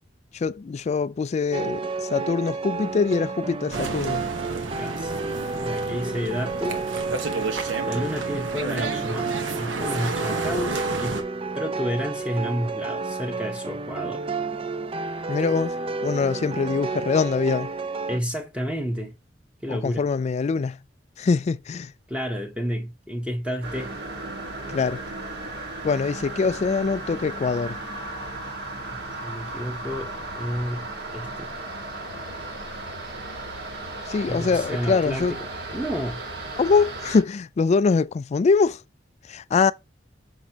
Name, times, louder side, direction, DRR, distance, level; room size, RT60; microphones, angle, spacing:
voice 1, 0.3-4.2 15.3-15.7 16.0-17.7 19.7-20.8 21.2-21.9 24.7-25.0 25.8-27.8 34.1-35.4 36.6-38.8 39.3-39.7, left 4 dB, 35° left, 0.3 m, -23 dB
sound 1, 1.5-18.2, right 3 dB, 30° right, 0.4 m, -31 dB
sound 2, 3.7-11.2, right 3 dB, 85° right, 1.1 m, -31 dB
voice 2, 4.8-5.2 5.6-6.9 7.8-11.2 11.5-14.3 18.1-19.2 19.6-20.1 22.1-23.9 29.2-31.5 34.3-35.3 35.7-36.2, equal, 5° right, 1.0 m, -30 dB
sound 3, 23.6-37.2, right 2 dB, 60° right, 1.7 m, -35 dB
6.1 x 6.0 x 2.9 m
head